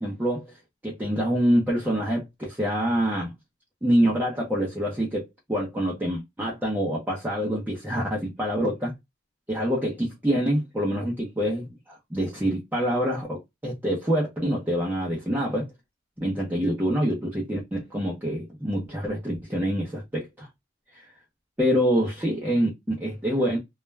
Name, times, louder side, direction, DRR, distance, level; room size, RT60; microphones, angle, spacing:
voice 1, 0.0-0.5 0.8-3.3 3.8-8.9 9.5-15.7 16.2-20.5 20.9-21.1 21.6-23.6, equal, 10° right, 0.6 m, -26 dB
2.3 x 2.1 x 3.1 m
head